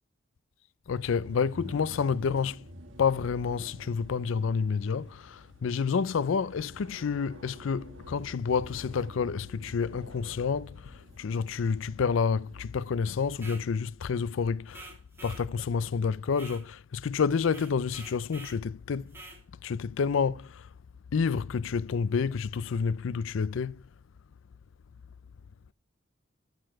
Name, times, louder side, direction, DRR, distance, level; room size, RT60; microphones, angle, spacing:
voice 1, 0.9-2.7 3.0-14.9 15.2-19.2 19.6-20.7 21.1-23.8, left 5 dB, 70° left, 0.4 m, -29 dB
sound 1, 1.0-13.0, right 1 dB, 65° right, 1.2 m, -50 dB
sound 2, 13.3-13.7 14.7-15.5 16.3-16.7 17.5-18.6 19.1-19.4, right 3 dB, 10° right, 2.8 m, -47 dB
14.0 x 6.7 x 4.6 m
head